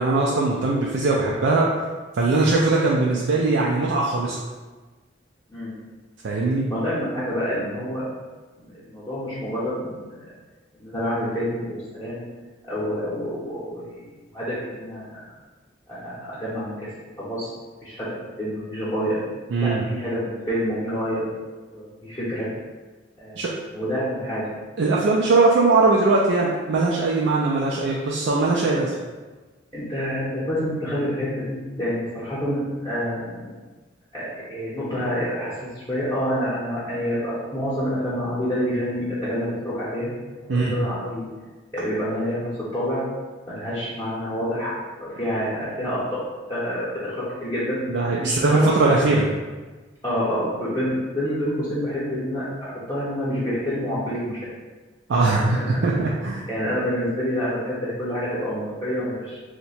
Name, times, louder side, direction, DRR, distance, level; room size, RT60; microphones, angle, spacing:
voice 1, 0.0-1.7 2.1-4.4 6.2-6.6 19.5-19.8 23.4-23.5 24.8-28.9 40.5-40.8 47.9-49.3 55.1-56.5, right 3 dB, 70° right, -3 dB, 0.4 m, -20 dB
voice 2, 6.7-8.1 8.6-10.2 10.8-12.2 12.7-15.2 15.9-16.9 17.2-17.5 17.8-19.2 19.6-21.2 21.7-22.5 23.2-23.4 23.7-24.4 29.7-33.5 34.1-40.1 40.4-41.3 41.7-43.0 43.5-46.2 46.5-47.8 48.2-49.0 50.0-54.4 55.3-55.8 56.4-59.4, equal, 20° left, -12 dB, 0.8 m, -28 dB
2.8 x 2.2 x 4.1 m, 1.3 s
head